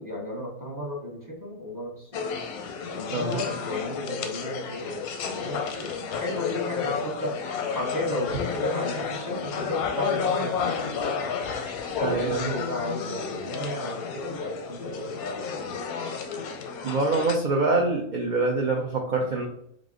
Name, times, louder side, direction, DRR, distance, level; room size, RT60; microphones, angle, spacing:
voice 1, 0.0-2.2 2.9-5.9 6.2-7.4 7.7-11.3 12.0-16.0, left 1 dB, 15° right, -3 dB, 0.8 m, -34 dB
sound 1, 2.1-17.4, left 6 dB, 90° left, 1.1 m, -31 dB
voice 2, 12.0-12.6 16.8-19.4, right 3 dB, 55° right, 0 dB, 0.5 m, -25 dB
5.0 x 2.1 x 3.6 m, 0.71 s
omnidirectional pair, 1.5 m